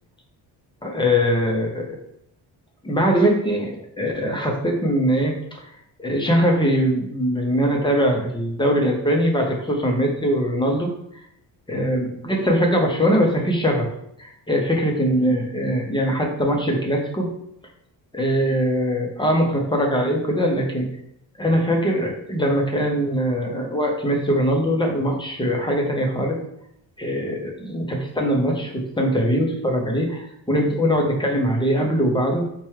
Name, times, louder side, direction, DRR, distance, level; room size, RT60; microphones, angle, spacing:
voice 1, 0.8-1.8 2.8-5.7 6.0-10.9 11.7-13.9 14.2-17.3 18.1-20.9 21.4-26.4 27.0-32.5, equal, 10° left, 0 dB, 0.6 m, -21 dB
4.4 x 2.3 x 3.1 m, 0.74 s
cardioid pair, 120°, 43 cm